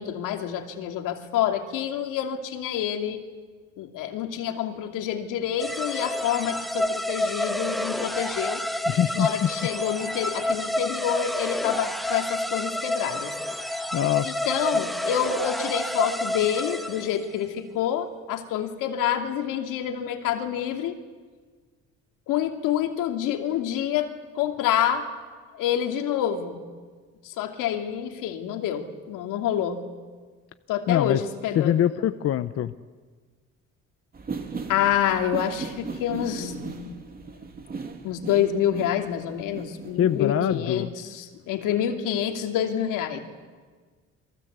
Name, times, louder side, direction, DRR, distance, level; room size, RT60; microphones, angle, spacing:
voice 1, 0.0-3.2 3.8-8.6 9.2-13.3 14.2-20.9 22.3-24.1 24.4-25.1 25.6-26.6 27.2-29.8 30.7-31.8 34.7-36.9 38.0-40.9 41.1-43.2, left 10 dB, 85° left, 5 dB, 2.8 m, -27 dB
sound 1, 5.6-17.3, left 1 dB, ahead, 1.4 m, -29 dB
voice 2, 8.9-9.7 13.9-14.5 30.9-31.2 31.5-32.7 40.0-40.9, left 10 dB, 50° left, 11 dB, 0.8 m, -24 dB
sound 2, 34.1-40.4, right 4 dB, 30° right, 3.0 m, -37 dB
29.5 x 23.5 x 8.2 m, 1.5 s
cardioid pair, 130°, 31 cm